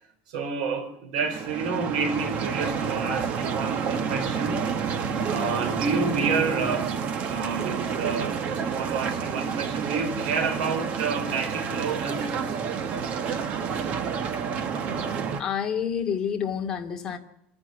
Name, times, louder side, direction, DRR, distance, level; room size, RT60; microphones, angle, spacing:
voice 1, 0.3-4.7 5.3-12.6, right 4 dB, 90° right, 4.5 m, -29 dB
sound 1, 1.2-15.4, right 6 dB, 35° right, 1.1 m, -29 dB
voice 2, 15.4-17.2, left 7 dB, 20° left, 2.4 m, -28 dB
26.5 x 11.5 x 9.3 m
cardioid pair, 175°, 4 cm